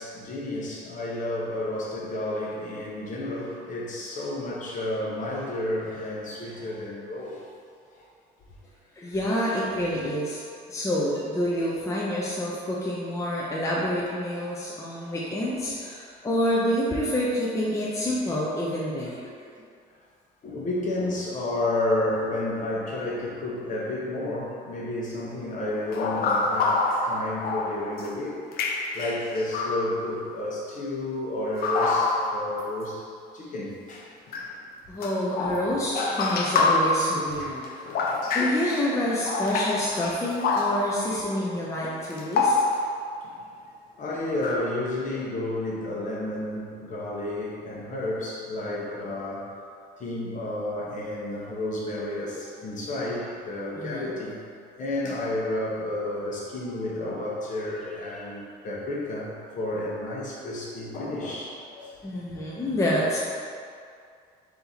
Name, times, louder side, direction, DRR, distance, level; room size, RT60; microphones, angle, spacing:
voice 1, 0.0-7.5 7.9-8.0 15.0-15.2 16.0-16.1 20.4-28.4 28.9-33.1 33.3-34.1 35.4-35.6 44.0-49.5 50.0-54.4 54.8-62.6, left 1 dB, 50° left, -4 dB, 1.0 m, -31 dB
voice 2, 9.0-10.4 10.7-19.3 34.9-37.6 38.3-42.6 53.7-54.1 62.0-63.2, left 1 dB, 15° left, -5 dB, 0.6 m, -28 dB
sound 1, 25.9-28.1 28.5-30.0 31.6-32.6 34.3-34.5 35.0-38.9 39.3-41.1 42.0-43.0 44.3-44.6, left 3 dB, 65° left, 0.5 m, -26 dB
4.1 x 2.8 x 4.0 m, 2.3 s
cardioid pair, 110°, 17 cm